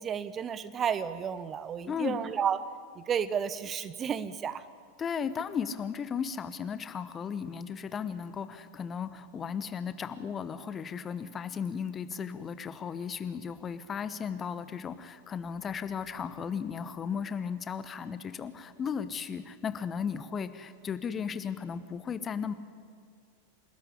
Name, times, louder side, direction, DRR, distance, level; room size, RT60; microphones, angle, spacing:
voice 1, 0.0-2.6 3.0-4.6, right 8 dB, 25° right, 15 dB, 0.8 m, -32 dB
voice 2, 1.9-2.2 5.0-22.5, left 7 dB, 20° left, 13 dB, 1.1 m, -35 dB
27.5 x 13.0 x 9.9 m, 2.2 s
figure-of-eight pair, 90°, 0 cm